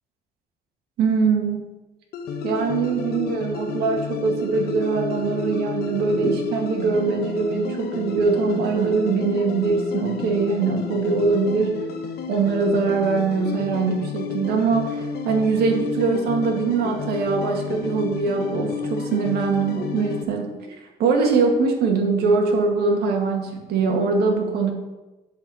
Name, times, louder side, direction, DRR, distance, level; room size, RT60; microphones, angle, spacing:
voice 1, 1.0-1.6 2.4-11.8 12.3-20.7 21.0-24.7, right 4 dB, 75° right, 1 dB, 2.1 m, -22 dB
sound 1, 2.1-20.2, left 5 dB, 70° left, 1.3 m, -31 dB
10.5 x 4.6 x 7.7 m, 1.1 s
cardioid pair, 110°, 17 cm